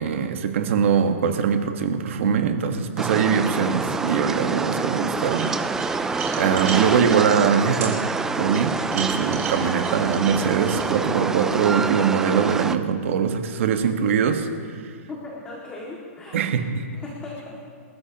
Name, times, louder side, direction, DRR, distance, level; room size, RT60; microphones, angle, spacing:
voice 1, 0.0-5.5 5.8-6.1 6.4-8.0 8.3-14.5 16.3-16.9, right 7 dB, 55° right, 6 dB, 1.4 m, -22 dB
sound 1, 3.0-12.8, right 4 dB, 5° right, 0.4 m, -26 dB
sound 2, 5.3-7.2 7.8-7.9 8.5-10.9, right 7 dB, 75° right, 5.3 m, -33 dB
voice 2, 15.1-16.5 16.9-17.6, left 3 dB, 10° left, -4 dB, 2.1 m, -37 dB
29.5 x 14.0 x 3.0 m, 2.1 s
hypercardioid pair, 160°, 8 cm